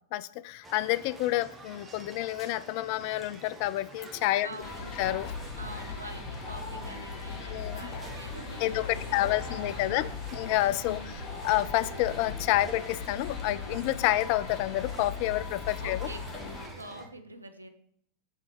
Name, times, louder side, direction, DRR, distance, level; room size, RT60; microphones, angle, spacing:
voice 1, 0.1-4.5 5.0-5.3 7.4-7.9 8.6-16.1, left 16 dB, 45° left, 16 dB, 0.3 m, -29 dB
sound 1, 0.6-17.1, right 2 dB, 10° right, 1.1 m, -49 dB
voice 2, 4.4-5.0 5.6-10.2 10.8-11.3 15.8-16.2 16.8-17.7, right 1 dB, 80° right, 7 dB, 0.7 m, -46 dB
sound 2, 4.6-16.7, left 4 dB, 25° left, 2.1 m, -39 dB
sound 3, 8.7-14.8, right 6 dB, 55° right, 1.3 m, -58 dB
6.5 x 3.9 x 4.7 m, 0.68 s
figure-of-eight pair, 90°, 0 cm